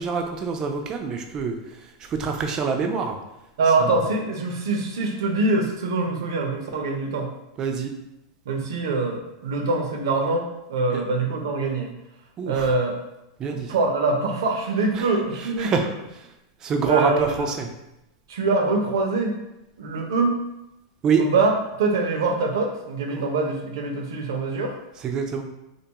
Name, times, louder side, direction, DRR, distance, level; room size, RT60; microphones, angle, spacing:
voice 1, 0.0-1.6 2.1-3.2 7.6-7.9 10.9-11.0 12.4-12.7 13.4-13.7 15.0-15.1 15.6-15.8 16.6-17.7 21.0-21.3 23.1-23.2 25.0-25.4, right 5 dB, 30° right, 4 dB, 0.4 m, -25 dB
voice 2, 3.6-7.3 8.5-11.9 12.5-13.0 13.5-15.9 16.8-17.5 18.3-19.4 19.8-20.3 21.2-21.5 21.8-24.8, right 3 dB, 80° right, 2 dB, 0.5 m, -24 dB
2.5 x 2.2 x 2.8 m, 0.90 s
supercardioid pair, 130°, 2 cm